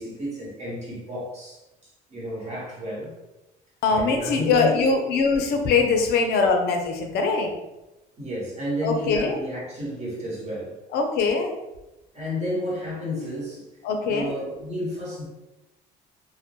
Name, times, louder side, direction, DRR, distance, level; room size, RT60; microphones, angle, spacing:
voice 1, 0.0-3.1 3.9-4.8 8.2-10.8 12.1-13.7 14.1-15.2, left 1 dB, 40° right, -5 dB, 1.1 m, -31 dB
voice 2, 3.8-7.6 8.8-9.4 10.9-11.5 13.8-14.3, left 4 dB, 75° left, 4 dB, 0.5 m, -22 dB
2.1 x 2.1 x 2.8 m, 0.97 s
cardioid pair, 110°, 17 cm